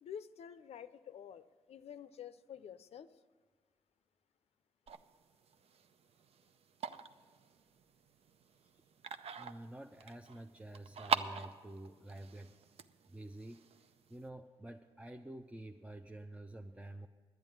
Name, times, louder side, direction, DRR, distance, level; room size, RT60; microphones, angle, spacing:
voice 1, 0.0-3.1, left 8 dB, 70° left, 12 dB, 0.5 m, -49 dB
sound 1, 4.9-14.3, right 7 dB, 65° right, 0.6 m, -43 dB
voice 2, 9.4-12.5 13.1-13.7 14.1-17.1, right 1 dB, 10° right, 4 dB, 0.6 m, -49 dB
10.5 x 9.0 x 7.8 m, 1.5 s
cardioid pair, 65°, 11 cm